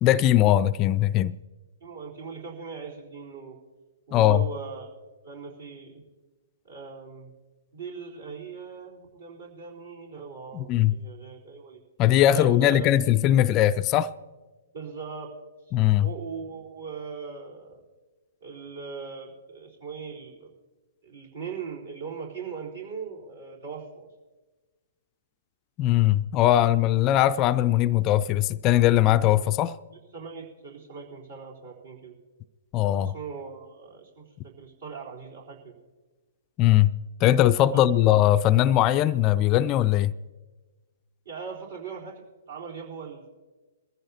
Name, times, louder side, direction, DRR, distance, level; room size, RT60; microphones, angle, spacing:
voice 1, 0.0-1.3 4.1-4.5 10.5-11.0 12.0-14.1 15.7-16.1 25.8-29.8 32.7-33.1 36.6-36.9 37.2-40.1, left 13 dB, 30° left, 0.3 m, -20 dB
voice 2, 1.8-3.6 4.1-4.9 5.2-6.1 6.6-7.3 7.7-11.8 12.3-12.9 14.7-15.3 15.7-15.8 16.0-17.8 18.4-20.5 21.0-24.1 29.9-32.2 33.0-35.7 37.7-37.9 41.3-42.2 42.5-43.3, right 5 dB, 65° right, 4.0 m, -40 dB
22.5 x 15.0 x 2.8 m
figure-of-eight pair, 120°, 0 cm